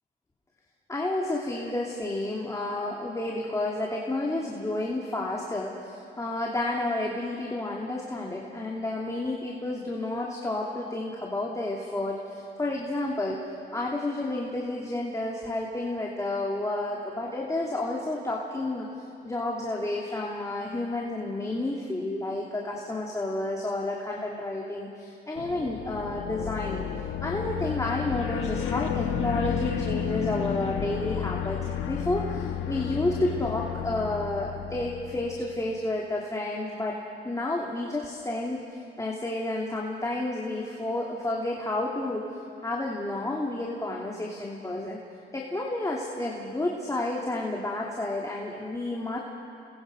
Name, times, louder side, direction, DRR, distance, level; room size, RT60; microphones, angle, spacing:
voice 1, 0.9-13.4 13.7-18.9 19.2-26.8 27.2-37.0 37.2-38.6 39.0-42.2 42.6-45.0 45.3-49.2, left 2 dB, 15° left, -2 dB, 2.8 m, -30 dB
sound 1, 25.3-35.5, left 9 dB, 85° left, 1.6 m, -32 dB
29.5 x 21.5 x 5.3 m, 2.5 s
cardioid pair, 90°, 20 cm